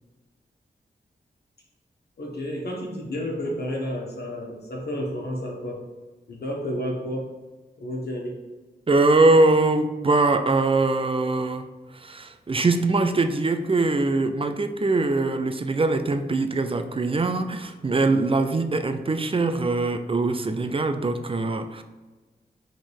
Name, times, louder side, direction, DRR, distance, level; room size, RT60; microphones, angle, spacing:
voice 1, 2.2-5.8 6.3-7.3 7.8-8.5, equal, 65° left, -2 dB, 1.6 m, -31 dB
voice 2, 8.9-11.7 11.9-21.8, right 2 dB, 30° right, 8 dB, 0.6 m, -22 dB
5.1 x 3.8 x 4.9 m, 1.3 s
cardioid pair, 65°, 17 cm